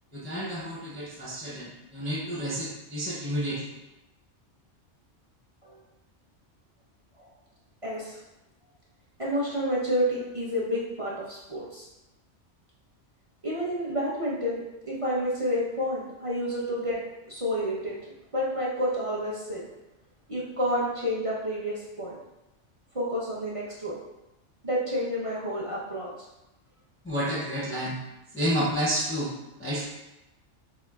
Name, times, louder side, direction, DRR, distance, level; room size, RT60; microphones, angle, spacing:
voice 1, 0.1-3.7 20.6-20.8 27.0-28.0 28.3-29.3 29.6-29.9, equal, 15° left, -7 dB, 0.6 m, -30 dB
voice 2, 7.8-8.2 9.2-11.9 13.4-14.6 14.9-17.0 17.3-18.0 18.3-19.6 20.3-22.2 22.9-24.0 24.6-26.1, equal, 30° right, -7 dB, 1.0 m, -29 dB
6.8 x 2.8 x 2.4 m, 0.97 s
omnidirectional pair, 1.2 m